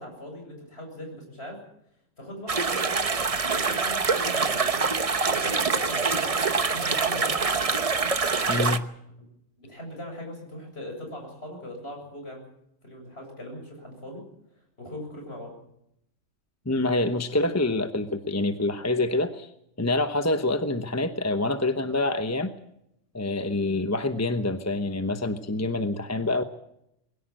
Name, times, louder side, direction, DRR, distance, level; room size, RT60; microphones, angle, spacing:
voice 1, 0.0-1.6 2.2-3.1 3.5-4.9 5.2-7.8 9.6-12.5 12.8-14.2 14.8-15.5 17.3-17.5, left 1 dB, 55° left, 2 dB, 7.8 m, -40 dB
sound 1, 2.5-8.8, right 4 dB, 30° right, 0.9 m, -25 dB
voice 2, 8.5-8.8 16.7-19.5 19.8-22.5 23.1-26.4, left 2 dB, 15° left, 8 dB, 0.9 m, -26 dB
22.0 x 17.0 x 7.8 m, 0.79 s
omnidirectional pair, 1.3 m